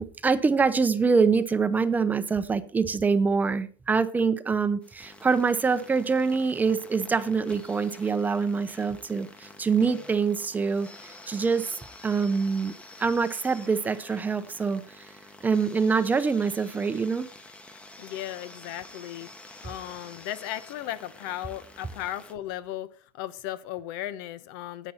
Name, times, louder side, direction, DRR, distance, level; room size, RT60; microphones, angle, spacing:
voice 1, 0.0-12.7 13.0-15.1 15.4-17.3, right 5 dB, 15° right, 12 dB, 0.7 m, -25 dB
sound 1, 4.8-22.3, left 2 dB, 10° left, 1.0 m, -49 dB
voice 2, 18.0-19.3 19.6-22.9 23.1-24.9, left 12 dB, 70° left, 15 dB, 0.9 m, -36 dB
11.0 x 8.3 x 4.3 m, 0.40 s
supercardioid pair, 145°, 12 cm